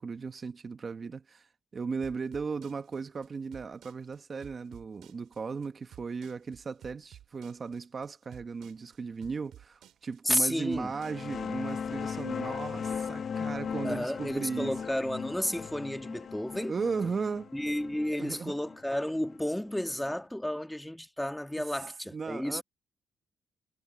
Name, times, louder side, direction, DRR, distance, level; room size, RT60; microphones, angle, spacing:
voice 1, 0.0-1.5 1.7-14.7 16.7-17.5 18.2-18.5 22.1-22.6, right 5 dB, 40° right, 1.1 m, -36 dB
sound 1, 2.0-11.6, right 11 dB, 80° right, 4.4 m, -54 dB
voice 2, 10.2-10.9 13.8-16.8 17.5-22.6, left 1 dB, 5° left, 1.7 m, -32 dB
sound 2, 10.8-20.1, left 6 dB, 50° left, 0.8 m, -38 dB
cardioid pair, 90°, 0 cm